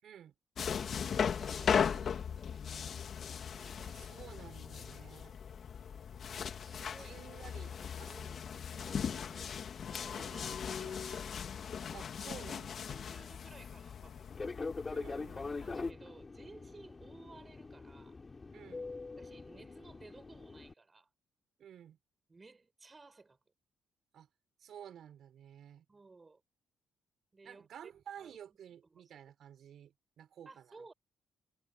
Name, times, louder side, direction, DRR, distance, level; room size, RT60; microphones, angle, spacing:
voice 1, 0.0-0.3 3.8-5.3 7.0-8.2 8.8-9.2 10.0-10.7 11.9-12.9 14.9-15.5 18.5-18.9 21.6-22.0 24.1-24.3 24.6-25.8 27.4-30.9, right 9 dB, 65° right, 4.9 m, -53 dB
sound 1, 0.6-15.9, left 7 dB, 55° left, 2.4 m, -38 dB
voice 2, 1.0-3.0 3.5-4.1 4.8-5.4 6.6-8.5 8.8-9.6 9.9-11.4 12.9-14.3 15.6-18.2 19.2-21.1 22.3-23.4 25.9-26.4 27.3-27.7 28.2-28.4 29.0-29.1 30.4-30.9, right 3 dB, 25° right, 7.8 m, -57 dB
Fixed-wing aircraft airplane, 14.3-20.7, left 3 dB, 25° left, 4.3 m, -43 dB
cardioid pair, 90°, 0 cm